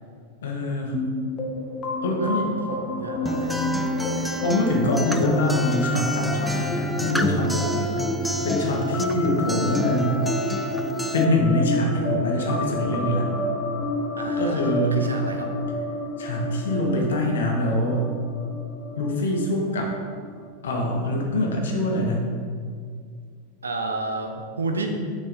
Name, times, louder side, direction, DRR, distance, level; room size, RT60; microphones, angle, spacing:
voice 1, 0.4-1.0 2.0-2.5 4.2-7.9 8.4-10.2 11.1-13.2 14.4-15.0 16.2-18.0 18.9-19.9 20.6-22.3, left 1 dB, 70° left, 0 dB, 1.2 m, -24 dB
sound 1, 0.9-20.5, left 1 dB, 30° left, 0.9 m, -30 dB
voice 2, 2.7-3.6 14.2-15.5 23.6-24.9, right 3 dB, 80° right, 4 dB, 0.7 m, -31 dB
Acoustic guitar, 3.3-11.2, equal, ahead, 0.4 m, -29 dB
6.6 x 4.8 x 4.2 m, 2.1 s
figure-of-eight pair, 90°, 0 cm